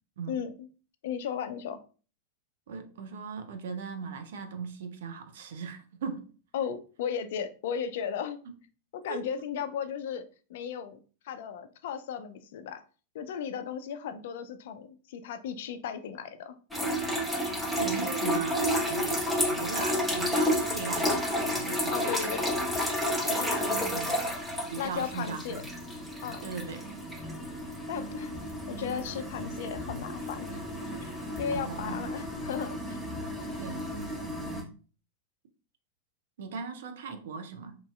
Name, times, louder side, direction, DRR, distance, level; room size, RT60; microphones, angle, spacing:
voice 1, 1.0-1.8 6.5-8.4 8.9-11.0 11.2-12.8 13.1-16.6 21.9-22.6 23.4-23.9 24.8-25.6 26.2-26.4 27.9-28.3 28.7-30.6 31.0-31.1 31.4-33.0, left 7 dB, 55° left, 0.3 m, -35 dB
voice 2, 2.7-6.3 9.1-9.2 17.7-19.2 19.5-22.2 23.3-24.2 24.7-25.6 26.4-26.8 31.5-32.3 33.6-33.8 36.4-37.8, right 5 dB, 60° right, 0.5 m, -38 dB
sound 1, 16.7-34.6, equal, ahead, 0.9 m, -31 dB
3.0 x 2.6 x 2.3 m
figure-of-eight pair, 90°, 0 cm